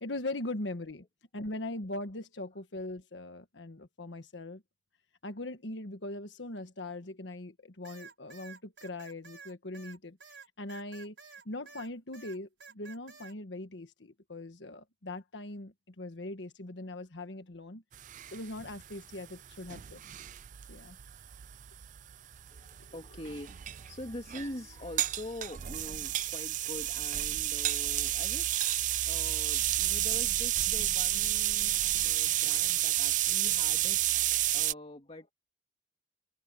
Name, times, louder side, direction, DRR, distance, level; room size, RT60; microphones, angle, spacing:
voice 1, 0.0-1.0 1.3-4.6 5.2-10.2 10.6-11.1 11.4-17.8 18.3-20.0 20.7-21.0, left 2 dB, 80° left, 1.5 m, -40 dB
sound 1, 7.8-11.9 12.1-13.3, right 5 dB, 80° right, 5.2 m, -51 dB
sound 2, 17.9-34.7, right 14 dB, 45° right, 0.4 m, -31 dB
voice 2, 22.5-35.3, left 1 dB, 35° left, 2.2 m, -45 dB
head